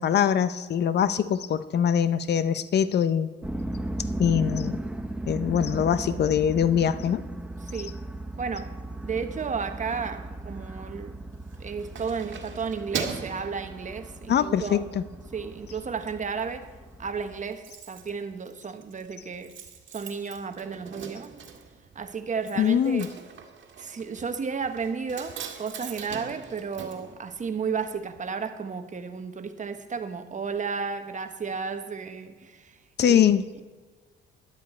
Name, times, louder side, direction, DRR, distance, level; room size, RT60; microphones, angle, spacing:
voice 1, 0.0-3.3 4.2-4.8 5.3-7.2 14.3-15.0 22.6-23.1 33.0-33.5, left 8 dB, 60° left, 0.7 m, -23 dB
sound 1, 3.4-17.4, right 1 dB, 5° right, 0.9 m, -37 dB
voice 2, 7.6-8.0 8.4-8.8 9.0-11.2 11.6-14.9 15.3-16.7 17.0-19.6 19.9-21.3 21.9-23.1 23.8-33.3, right 5 dB, 40° right, 1.1 m, -33 dB
Keys jangling, 11.3-14.4 14.9-15.1 15.5-16.2 16.4-16.5 16.8-16.9 17.1-27.9 28.1-28.2, right 6 dB, 65° right, 1.8 m, -41 dB
13.0 x 11.0 x 4.3 m
cardioid pair, 90°, 20 cm